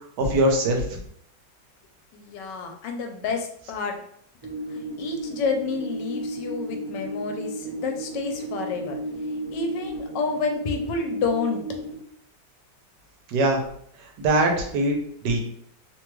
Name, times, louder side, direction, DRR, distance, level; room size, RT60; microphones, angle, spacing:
voice 1, 0.2-1.0 13.3-13.6 14.2-15.0 15.2-15.4, right 1 dB, 75° right, 2 dB, 1.2 m, -22 dB
voice 2, 2.1-3.9 4.7-9.0 9.5-11.6, left 5 dB, 85° left, 3 dB, 1.2 m, -29 dB
sound 1, 4.4-11.9, right 1 dB, 25° right, 0.5 m, -33 dB
3.0 x 2.2 x 3.0 m, 0.66 s
omnidirectional pair, 1.8 m